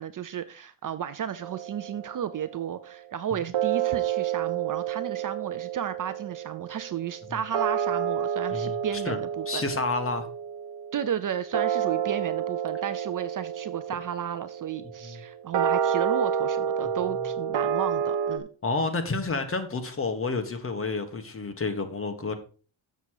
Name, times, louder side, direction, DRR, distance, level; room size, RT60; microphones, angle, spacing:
voice 1, 0.0-9.6 10.9-18.5, right 9 dB, 45° right, 0.6 m, -33 dB
sound 1, 1.4-2.8 3.5-18.4, right 8 dB, 60° right, 1.1 m, -30 dB
voice 2, 8.5-9.2 9.5-10.2 15.0-15.2 18.6-22.3, left 3 dB, 30° left, 1.3 m, -30 dB
7.2 x 6.8 x 4.7 m
cardioid pair, 130°, 47 cm